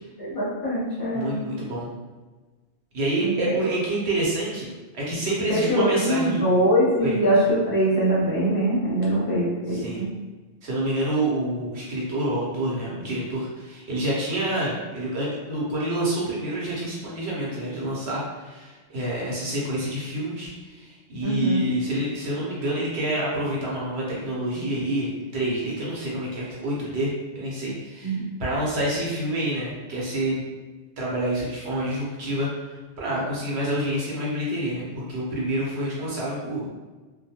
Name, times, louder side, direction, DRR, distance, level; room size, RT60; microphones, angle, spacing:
voice 1, 0.2-1.5 3.2-3.6 5.5-10.1 21.2-21.7 28.0-28.2, right 1 dB, 25° left, -6 dB, 0.6 m, -23 dB
voice 2, 1.1-1.9 2.9-4.7 4.9-6.5 7.0-7.2 9.7-10.0 10.6-30.4 31.0-36.7, right 1 dB, 65° right, -5 dB, 1.0 m, -27 dB
2.3 x 2.2 x 2.8 m, 1.3 s
omnidirectional pair, 1.2 m